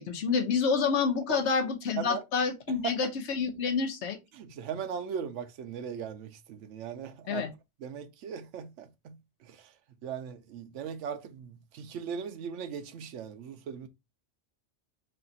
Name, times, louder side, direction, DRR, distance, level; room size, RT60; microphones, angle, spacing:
voice 1, 0.0-4.2 7.3-7.5, left 5 dB, 65° left, 1.1 m, -28 dB
voice 2, 2.7-3.0 4.3-7.4 7.8-9.2 9.4-9.7 10.0-13.9, right 7 dB, 75° right, 0.9 m, -38 dB
3.3 x 2.4 x 3.8 m
omnidirectional pair, 1.3 m